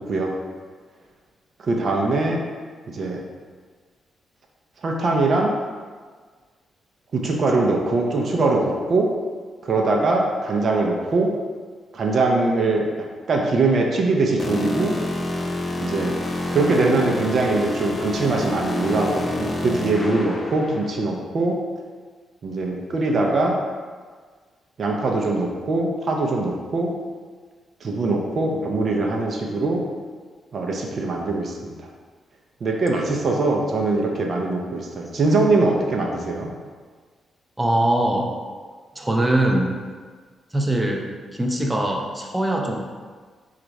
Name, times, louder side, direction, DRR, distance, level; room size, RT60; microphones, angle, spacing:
voice 1, 1.6-2.4 2.9-3.2 4.8-5.5 7.1-9.1 9.6-11.3 11.9-12.8 13.3-14.9 15.8-16.1 16.5-21.6 22.4-23.6 24.8-26.9 27.8-29.8 30.5-31.7 32.6-36.5, right 3 dB, 55° right, 0 dB, 0.6 m, -22 dB
sound 1, 14.4-20.9, left 1 dB, 35° left, 0.6 m, -28 dB
voice 2, 37.6-38.3 39.0-39.8 40.5-42.8, right 1 dB, 10° right, 0 dB, 0.6 m, -22 dB
4.4 x 2.5 x 4.0 m, 1.5 s
cardioid pair, 75°, 0 cm